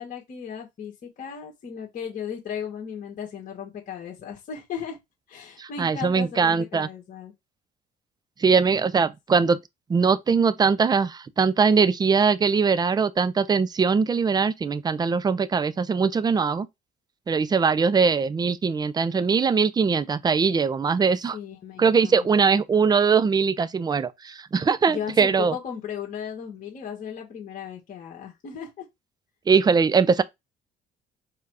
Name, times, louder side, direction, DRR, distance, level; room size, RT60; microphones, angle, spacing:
voice 1, 0.0-5.0 5.3-7.3 21.3-22.5 24.9-28.9, left 8 dB, 50° left, 1.8 m, -36 dB
voice 2, 5.6-6.9 8.4-9.6 9.9-16.7 17.3-21.4 21.8-25.6 29.5-30.2, right 5 dB, 25° right, 0.6 m, -21 dB
4.8 x 2.3 x 4.7 m
cardioid pair, 110°, 17 cm